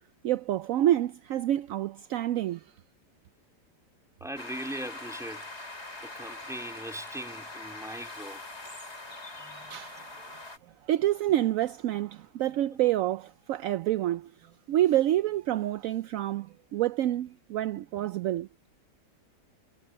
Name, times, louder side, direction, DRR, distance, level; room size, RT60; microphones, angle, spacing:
voice 1, 0.2-2.6 9.7-10.0 10.9-14.3 14.7-16.5 16.7-18.5, right 13 dB, 75° right, 0.7 m, -27 dB
voice 2, 4.2-5.7 6.0-8.4 9.4-9.8, equal, ahead, 3.0 m, -40 dB
sound 1, 4.4-10.6, left 2 dB, 35° left, 5.2 m, -43 dB
omnidirectional pair, 1.9 m